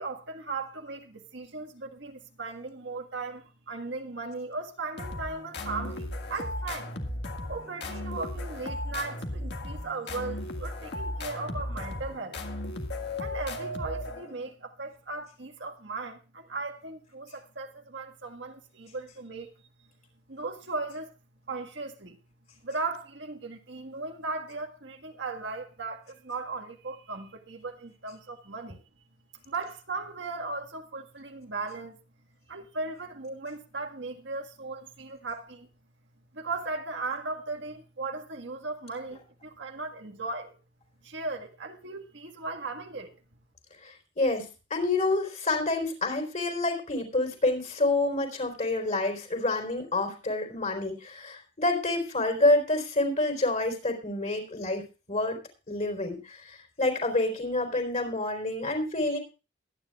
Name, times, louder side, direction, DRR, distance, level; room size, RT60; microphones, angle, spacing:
voice 1, 0.0-6.9 7.5-12.4 13.2-19.5 20.3-21.1 21.5-22.2 22.6-28.8 29.5-32.0 32.5-35.7 36.3-40.6 41.0-43.1, right 3 dB, 70° right, 1.7 m, -37 dB
sound 1, 5.0-14.5, left 1 dB, 65° left, 1.9 m, -36 dB
voice 2, 43.8-54.8 55.1-55.4 55.7-59.2, left 2 dB, 40° left, 4.2 m, -28 dB
22.5 x 10.0 x 2.4 m
head